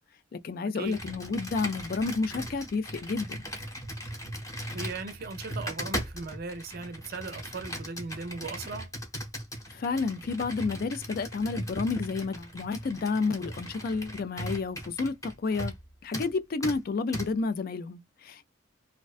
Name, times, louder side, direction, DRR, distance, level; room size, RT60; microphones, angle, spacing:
voice 1, 0.3-3.4 9.7-15.7 16.0-18.5, left 4 dB, 50° left, 0.3 m, -30 dB
Computer keyboard, 0.8-15.8 16.1-16.3 16.6-16.8 17.1-17.3, equal, 15° left, 0.9 m, -38 dB
voice 2, 4.7-8.9, right 3 dB, 50° right, 0.5 m, -38 dB
2.5 x 2.1 x 2.3 m
head